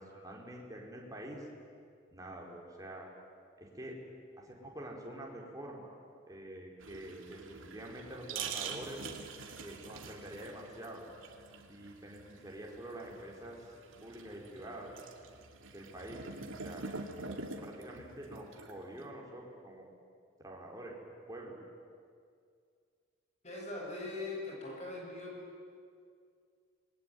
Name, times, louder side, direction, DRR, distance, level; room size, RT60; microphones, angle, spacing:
voice 1, 0.0-1.5 2.1-3.1 3.6-4.0 4.4-5.9 6.3-9.0 9.6-11.0 11.7-13.7 14.0-15.1 15.7-16.2 16.6-16.9 17.6-19.9 20.4-20.9 21.3-21.6, right 1 dB, 15° right, -2 dB, 4.7 m, -46 dB
sound 1, 6.8-19.0, right 4 dB, 80° right, 2.6 m, -45 dB
voice 2, 23.4-25.3, left 2 dB, 35° left, -2 dB, 7.6 m, -41 dB
27.5 x 22.0 x 9.4 m, 2.2 s
head